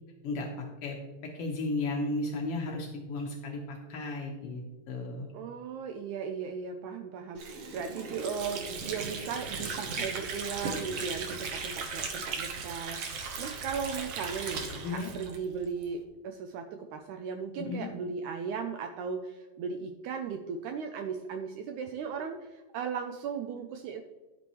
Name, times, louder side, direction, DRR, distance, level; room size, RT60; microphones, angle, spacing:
voice 1, 0.2-1.0 1.3-5.3 14.8-15.1 17.6-18.0, left 2 dB, 75° left, 0 dB, 1.3 m, -34 dB
voice 2, 5.3-13.0 13.4-22.4 22.7-24.0, right 6 dB, 85° right, 6 dB, 1.8 m, -37 dB
Water / Sink (filling or washing), 7.4-15.9, right 4 dB, 65° right, 1.6 m, -37 dB
11.5 x 8.3 x 3.1 m, 1.2 s
omnidirectional pair, 4.0 m